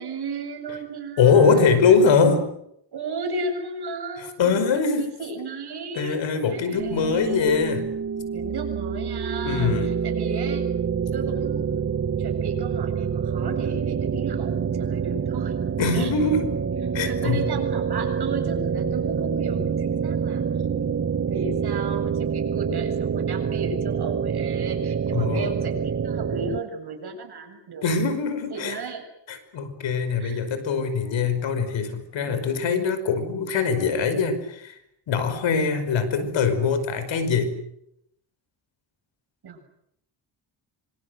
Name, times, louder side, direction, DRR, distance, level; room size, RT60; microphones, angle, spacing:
voice 1, 0.0-2.0 2.9-7.5 8.3-10.7 11.1-11.8 12.2-15.5 15.9-16.1 17.1-27.9 28.5-29.0 30.2-30.5 32.3-32.6 39.4-39.7, right 4 dB, 60° right, 4 dB, 7.6 m, -35 dB
voice 2, 1.2-2.5 4.4-5.1 5.9-7.9 9.4-9.9 15.8-16.5 16.9-17.5 25.1-25.5 27.8-28.8 29.3-34.8 35.1-37.6, left 5 dB, 80° left, 10 dB, 5.4 m, -22 dB
sound 1, 6.8-26.6, right 7 dB, 35° right, 1.1 m, -27 dB
26.0 x 26.0 x 8.0 m, 0.75 s
cardioid pair, 115°, 44 cm